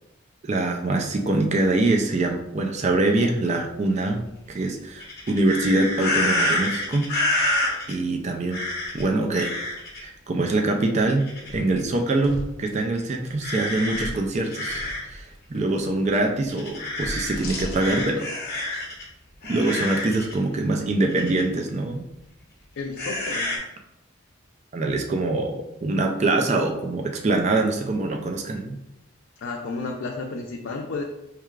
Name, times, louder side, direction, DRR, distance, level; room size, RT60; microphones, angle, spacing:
voice 1, 0.4-7.5 7.9-8.6 8.9-9.6 10.0-18.3 19.5-22.0 24.7-28.8, right 2 dB, 35° right, 3 dB, 0.3 m, -24 dB
sound 1, 5.0-7.9 8.5-9.0 9.3-10.0 11.2-11.7 12.2-12.4 13.4-15.1 15.5-15.6 16.5-19.0 19.4-20.3 21.1-21.4 23.0-23.6, left 1 dB, 45° left, 0.9 m, -28 dB
voice 2, 22.8-23.6 29.4-31.0, left 3 dB, 65° left, 1 dB, 0.4 m, -32 dB
4.5 x 3.1 x 2.4 m, 0.88 s
head